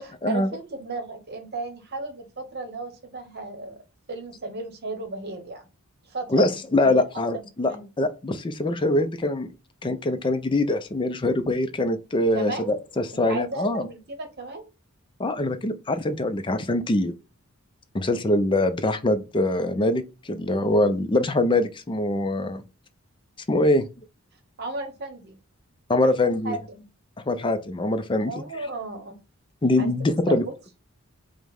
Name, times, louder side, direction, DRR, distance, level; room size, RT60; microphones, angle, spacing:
voice 1, 0.0-3.7 4.1-5.7 6.1-7.1 7.3-7.9 12.3-12.7 13.1-14.7 24.6-25.4 26.2-26.8 28.3-29.2 29.8-29.9 30.3-30.5, right 3 dB, 50° right, 0.9 m, -34 dB
voice 2, 6.3-9.5 9.8-13.9 15.2-17.1 17.9-22.6 23.5-23.9 25.9-26.6 27.3-28.3 29.6-30.5, left 2 dB, 20° left, 0.4 m, -23 dB
5.0 x 2.1 x 3.5 m
head